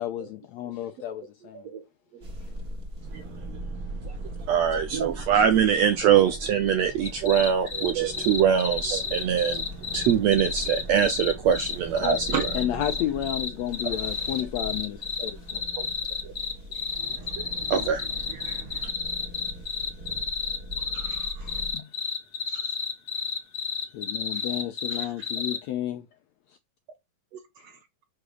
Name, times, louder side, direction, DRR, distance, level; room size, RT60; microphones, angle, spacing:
voice 1, 0.0-1.6 12.0-12.2 12.5-15.6 17.7-17.9 21.4-21.8 23.9-26.1, left 12 dB, 80° left, 1.6 m, -32 dB
voice 2, 1.2-1.8 2.1-2.3 4.9-5.2 7.7-8.0 10.4-10.8 12.1-12.5 14.4-14.5 15.2-15.9 16.2-16.3 17.2-17.3 20.8-21.6 22.5-22.8 24.9-25.3 25.7-25.8 27.3-27.8, right 7 dB, 65° right, 1.8 m, -37 dB
sound 1, 2.2-21.7, right 1 dB, 35° right, 1.8 m, -40 dB
voice 3, 3.1-3.6 4.0-4.2 4.4-9.7 9.9-12.3 13.8-13.9 17.0-18.9, right 8 dB, 80° right, 1.6 m, -24 dB
sound 2, 7.0-25.6, left 6 dB, 50° left, 1.0 m, -31 dB
6.8 x 4.9 x 6.3 m
omnidirectional pair, 3.9 m